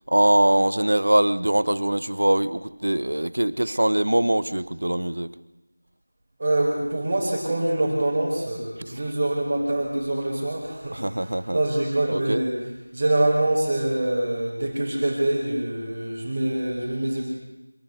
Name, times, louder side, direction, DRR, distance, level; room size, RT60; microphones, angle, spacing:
voice 1, 0.1-5.3 8.9-9.0 10.9-11.6 12.1-12.4, right 1 dB, 75° right, 16 dB, 1.3 m, -22 dB
voice 2, 6.4-12.5 12.9-17.3, right 1 dB, 25° right, -5 dB, 5.6 m, -25 dB
26.0 x 19.0 x 9.8 m, 0.99 s
figure-of-eight pair, 175°, 0 cm